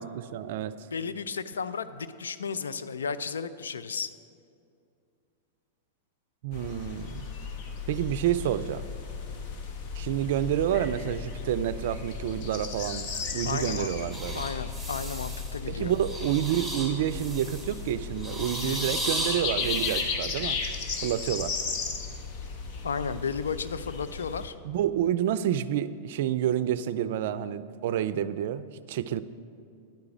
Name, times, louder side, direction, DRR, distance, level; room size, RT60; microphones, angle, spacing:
voice 1, 0.0-0.7 6.4-7.3 7.9-8.9 9.9-14.5 15.7-20.6 21.0-21.5 24.6-29.2, right 11 dB, 65° right, 14 dB, 0.4 m, -29 dB
voice 2, 0.9-4.1 13.5-13.9 14.3-15.9 18.6-19.0 22.8-24.5, left 5 dB, 90° left, 12 dB, 0.4 m, -33 dB
sound 1, 6.5-24.5, left 5 dB, 50° left, 1.1 m, -35 dB
sound 2, 14.1-15.6 15.9-17.8 18.2-20.0, right 1 dB, 5° left, 2.1 m, -36 dB
10.5 x 4.9 x 7.1 m, 2.5 s
hypercardioid pair, 110°, 0 cm